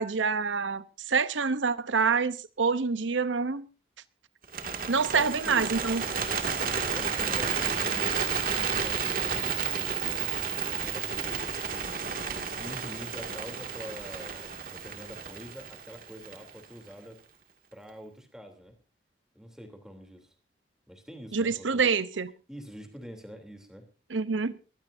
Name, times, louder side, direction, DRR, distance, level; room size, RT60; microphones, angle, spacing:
voice 1, 0.0-3.7 4.9-6.0 21.3-22.3 24.1-24.5, right 5 dB, 90° right, 0.8 m, -26 dB
Bird, 4.4-16.6, right 6 dB, 50° right, 2.2 m, -31 dB
voice 2, 5.1-5.7 6.8-10.2 10.7-12.0 12.4-17.2 17.7-18.7 19.3-20.3 20.9-21.9 22.5-23.9, equal, 5° right, 3.1 m, -45 dB
22.5 x 16.0 x 2.7 m
head